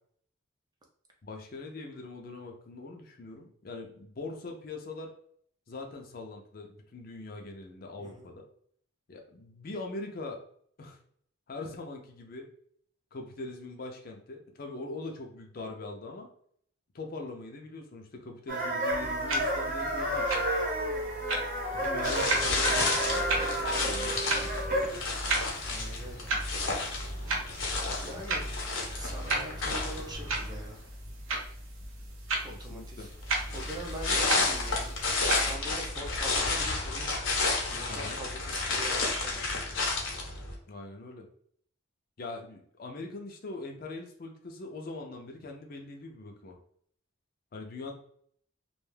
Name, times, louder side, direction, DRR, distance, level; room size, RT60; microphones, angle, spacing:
voice 1, 1.2-5.1 5.7-8.4 9.1-10.4 10.8-11.0 11.5-12.5 13.1-16.3 16.9-20.4 21.7-24.6 32.5-33.1 37.9-38.2 40.7-41.3 42.2-46.6 47.5-47.9, left 3 dB, 45° left, 2 dB, 0.4 m, -42 dB
voice 2, 8.0-8.3 24.0-24.3 25.7-26.3 27.9-28.5 28.9-30.8 32.4-33.1 33.5-34.9 35.3-37.2 37.7-39.6, right 1 dB, 20° right, 0 dB, 0.5 m, -43 dB
sound 1, 18.5-25.0, right 1 dB, 45° right, 0.9 m, -31 dB
sound 2, 18.9-35.6, right 2 dB, 85° right, 0.6 m, -36 dB
sound 3, 22.0-30.6 33.2-40.5, left 3 dB, 80° left, 0.7 m, -31 dB
2.4 x 2.2 x 3.2 m, 0.62 s
head